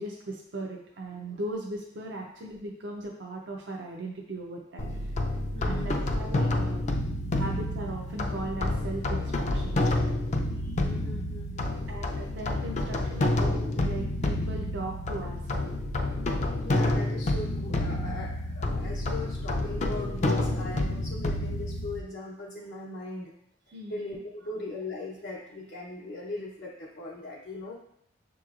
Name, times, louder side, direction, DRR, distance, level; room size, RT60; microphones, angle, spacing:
voice 1, 0.0-5.2 5.6-6.8 7.3-9.9 10.6-10.8 11.9-15.8 23.7-23.9, right 2 dB, 75° right, 0 dB, 0.5 m, -38 dB
sound 1, 4.8-22.0, left 1 dB, 40° left, 0.4 m, -29 dB
voice 2, 5.5-6.0 7.4-7.5 10.8-11.9 16.5-23.3 23.9-27.9, left 2 dB, 75° left, -6 dB, 0.8 m, -39 dB
6.9 x 3.0 x 2.4 m, 0.73 s
head